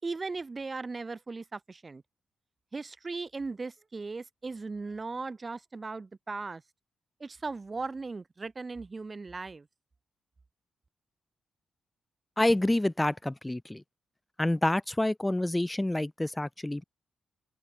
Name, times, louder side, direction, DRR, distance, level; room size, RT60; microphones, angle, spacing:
voice 1, 0.0-2.0 2.7-6.6 7.2-9.7, right 3 dB, 30° right, 5.3 m, -37 dB
voice 2, 12.4-13.8 14.4-16.8, left 1 dB, 10° left, 3.4 m, -28 dB
cardioid pair, 105°, 0 cm